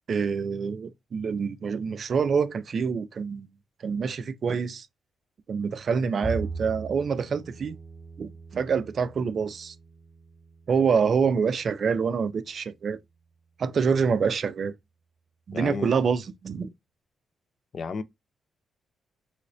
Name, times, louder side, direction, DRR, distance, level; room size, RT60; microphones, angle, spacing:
voice 1, 0.1-3.5 3.8-4.9 5.5-7.8 8.2-9.7 10.7-13.0 13.6-14.8 15.5-16.7, right 6 dB, 55° right, 0.3 m, -26 dB
Bowed string instrument, 6.2-12.6, right 3 dB, 25° right, 0.7 m, -40 dB
voice 2, 15.5-15.9 17.7-18.0, left 5 dB, 50° left, 0.3 m, -32 dB
3.1 x 3.0 x 2.6 m
cardioid pair, 80°, 0 cm